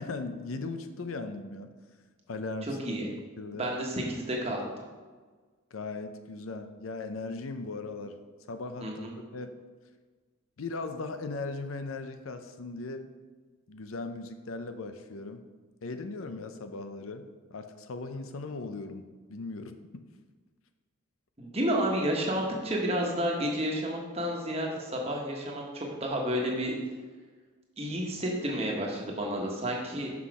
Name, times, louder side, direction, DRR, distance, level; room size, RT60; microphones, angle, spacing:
voice 1, 0.0-1.7 2.3-2.7 3.4-3.7 5.7-8.2 8.5-9.1 9.3-9.6 10.6-13.1 13.7-15.4 15.8-19.7, left 3 dB, 75° left, 8 dB, 0.6 m, -38 dB
voice 2, 2.6-3.1 3.5-4.9 8.8-9.1 21.4-26.8 27.8-30.1, equal, 30° right, -1 dB, 1.2 m, -31 dB
5.9 x 5.8 x 4.8 m, 1.4 s
head